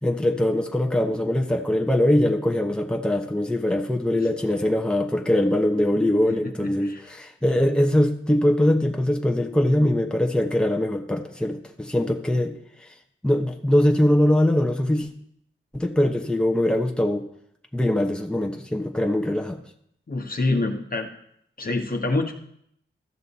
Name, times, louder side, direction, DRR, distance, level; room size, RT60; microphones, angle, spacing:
voice 1, 0.0-12.5 12.8-12.9 13.2-15.1 15.7-17.3 17.7-19.6, left 1 dB, 5° left, 3 dB, 1.1 m, -22 dB
voice 2, 6.3-7.1 20.1-21.1 21.6-22.3, left 2 dB, 45° left, 4 dB, 1.3 m, -26 dB
13.5 x 6.4 x 4.2 m, 0.72 s
cardioid pair, 55°, 21 cm